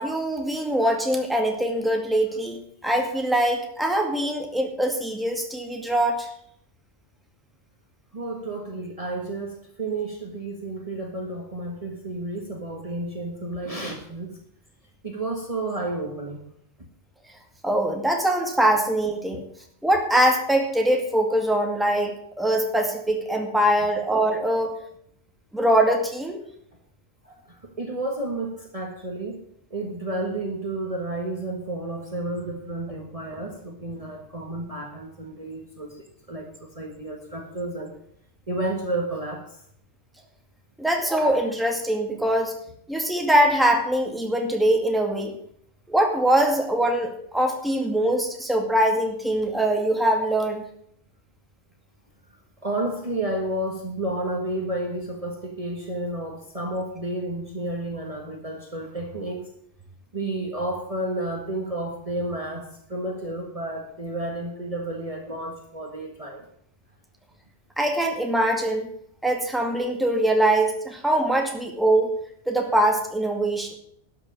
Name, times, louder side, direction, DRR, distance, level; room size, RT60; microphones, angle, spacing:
voice 1, 0.0-6.3 17.6-19.4 19.8-24.8 25.5-26.4 40.8-42.6 42.9-45.3 45.9-50.6 67.8-68.9 69.2-72.1 72.5-73.7, right 1 dB, ahead, 2 dB, 2.1 m, -23 dB
voice 2, 8.1-14.3 15.0-16.4 27.2-29.4 29.7-36.5 36.7-37.9 38.5-39.4 52.6-59.4 60.1-66.4, right 2 dB, 30° right, 1 dB, 1.7 m, -31 dB
12.5 x 6.7 x 8.7 m, 0.67 s
omnidirectional pair, 1.2 m